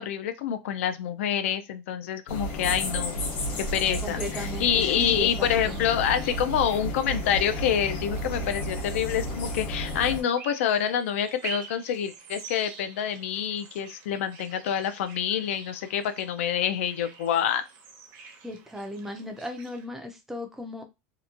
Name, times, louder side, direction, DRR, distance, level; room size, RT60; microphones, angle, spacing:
voice 1, 0.0-3.2 3.6-17.6, left 9 dB, 85° left, 10 dB, 0.4 m, -27 dB
sound 1, 2.3-10.2, equal, 55° left, 0.9 m, -32 dB
sound 2, 3.9-19.9, right 5 dB, 50° right, 0.8 m, -47 dB
voice 2, 4.0-4.7 5.0-5.8 18.4-20.8, left 1 dB, 5° right, 4 dB, 0.4 m, -36 dB
2.8 x 2.1 x 2.4 m, 0.24 s
supercardioid pair, 155°, 7 cm